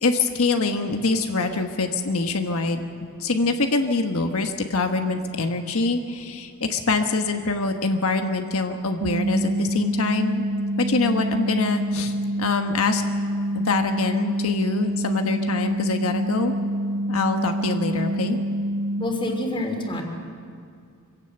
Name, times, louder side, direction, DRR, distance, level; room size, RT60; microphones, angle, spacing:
voice 1, 0.0-2.8 3.2-10.4 10.8-13.0 13.5-16.5 17.1-18.4, left 3 dB, 85° left, 5 dB, 1.3 m, -24 dB
sound 1, 9.0-19.0, right 1 dB, 65° right, 1.4 m, -26 dB
voice 2, 19.0-20.0, left 1 dB, 25° left, 3 dB, 3.1 m, -27 dB
24.5 x 16.5 x 8.0 m, 2.3 s
head